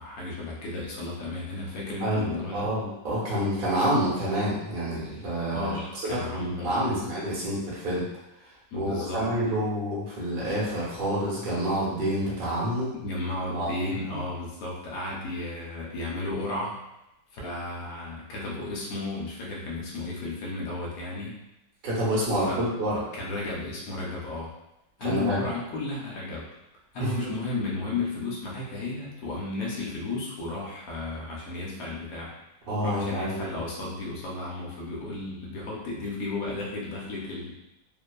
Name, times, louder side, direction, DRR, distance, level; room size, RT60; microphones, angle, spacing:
voice 1, 0.0-2.7 5.5-7.0 8.7-9.2 13.0-16.8 17.3-21.4 22.5-22.7 23.1-24.5 25.0-26.4 26.9-32.3 32.8-37.5, left 2 dB, 65° left, -4 dB, 1.0 m, -33 dB
voice 2, 2.0-5.7 6.1-8.0 8.7-12.9 13.5-13.7 14.0-14.2 21.8-23.0 25.0-25.4 27.0-27.1 32.7-33.5, equal, 45° right, -7 dB, 0.8 m, -28 dB
2.9 x 2.0 x 2.2 m, 0.91 s
omnidirectional pair, 1.9 m